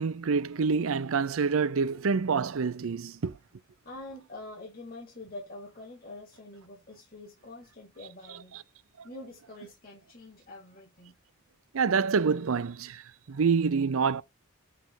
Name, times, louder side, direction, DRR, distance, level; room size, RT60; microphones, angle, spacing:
voice 1, 0.0-3.4 11.7-14.2, right 5 dB, 75° right, 0.5 m, -27 dB
voice 2, 3.8-8.6 9.0-11.2, left 2 dB, 45° left, 3.1 m, -45 dB
8.3 x 3.3 x 4.1 m
head